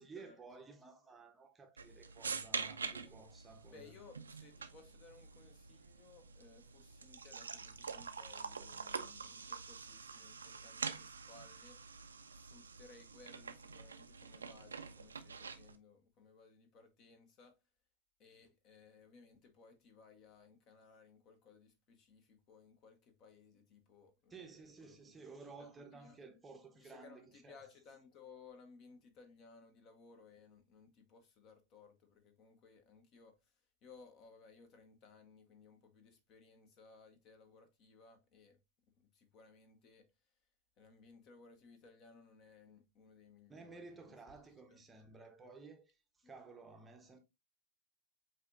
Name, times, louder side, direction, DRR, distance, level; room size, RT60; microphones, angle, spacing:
voice 1, 0.0-4.0 24.3-27.7 43.5-47.2, right 4 dB, 15° right, 0.8 m, -55 dB
sound 1, 1.8-15.8, right 5 dB, 75° right, 0.4 m, -46 dB
voice 2, 2.8-3.1 3.7-11.8 12.3-17.6 18.2-25.2 25.6-26.2 26.8-33.4 33.8-38.6 39.0-40.1 40.8-44.1 44.7-44.8 46.2-46.3, left 4 dB, 35° left, 1.0 m, -61 dB
7.9 x 2.8 x 2.4 m
figure-of-eight pair, 90°, 0 cm